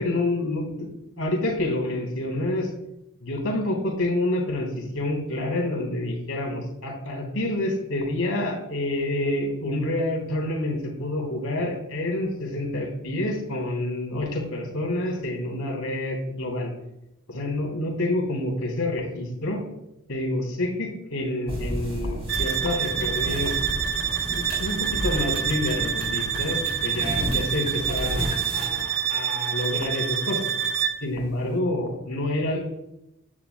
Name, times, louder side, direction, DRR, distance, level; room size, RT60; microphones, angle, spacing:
voice 1, 0.0-2.7 3.2-16.7 17.3-19.6 20.1-23.6 24.3-30.5 31.0-32.6, left 1 dB, 70° left, 0 dB, 3.3 m, -28 dB
sound 1, 21.5-28.8, equal, 30° right, 3.3 m, -32 dB
sound 2, 22.3-31.1, right 9 dB, 50° right, 0.8 m, -27 dB
15.5 x 10.5 x 2.3 m, 0.88 s
head